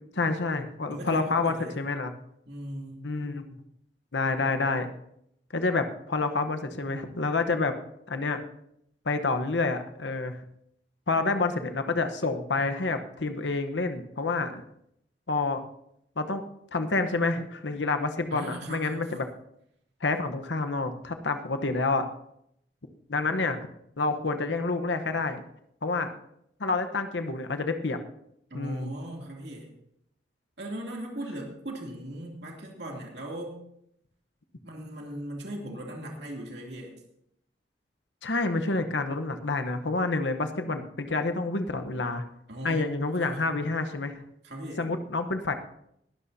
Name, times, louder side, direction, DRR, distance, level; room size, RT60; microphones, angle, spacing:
voice 1, 0.1-2.1 3.0-3.6 4.1-4.9 5.5-7.7 8.1-8.4 9.0-10.4 11.1-14.6 15.3-15.6 16.2-16.4 16.7-19.3 20.0-22.0 23.1-23.6 24.0-25.4 25.8-26.1 26.6-28.0 28.5-28.9 38.2-42.2 42.6-44.2 44.8-45.5, left 3 dB, 90° left, 7 dB, 1.0 m, -28 dB
voice 2, 0.9-1.8 2.5-3.0 18.3-19.2 28.5-29.7 30.6-33.5 34.6-36.9 42.5-42.8 43.2-43.5 44.4-44.8, right 1 dB, 65° right, 0 dB, 2.8 m, -38 dB
20.5 x 12.5 x 2.8 m, 0.75 s
head